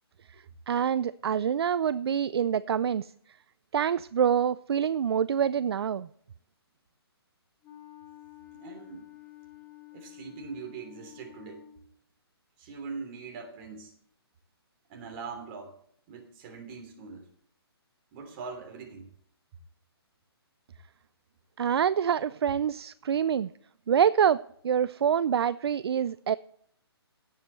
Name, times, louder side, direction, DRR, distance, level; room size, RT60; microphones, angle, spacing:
voice 1, 0.7-3.1 3.7-6.1 21.6-23.5 23.9-26.4, right 8 dB, 70° right, 17 dB, 0.4 m, -26 dB
Wind instrument woodwind instrument, 7.6-11.9, left 15 dB, 20° left, 1.6 m, -50 dB
voice 2, 8.5-9.1 9.9-11.6 12.6-13.9 14.9-15.7 16.1-17.3 18.1-19.1, right 5 dB, 30° right, 2 dB, 3.0 m, -42 dB
17.0 x 7.6 x 3.1 m, 0.65 s
hypercardioid pair, 155°, 14 cm